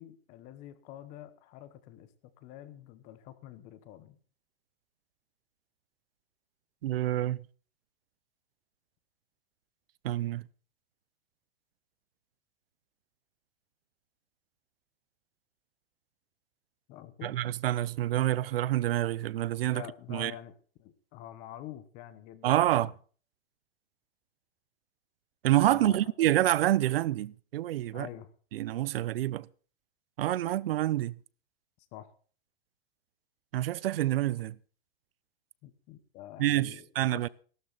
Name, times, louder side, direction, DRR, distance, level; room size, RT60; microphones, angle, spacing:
voice 1, 0.0-2.1 2.4-4.2 16.9-17.4 19.7-20.5 20.8-22.9 25.7-26.1 27.9-28.3 31.9-32.1 35.6-37.3, left 12 dB, 25° left, 1.1 m, -47 dB
voice 2, 6.8-7.5 10.0-10.5 17.2-20.3 22.4-22.9 25.4-28.1 28.5-29.5 30.2-31.2 33.5-34.6 36.4-37.3, right 14 dB, 65° right, 0.7 m, -27 dB
16.5 x 12.5 x 4.0 m
supercardioid pair, 180°, 31 cm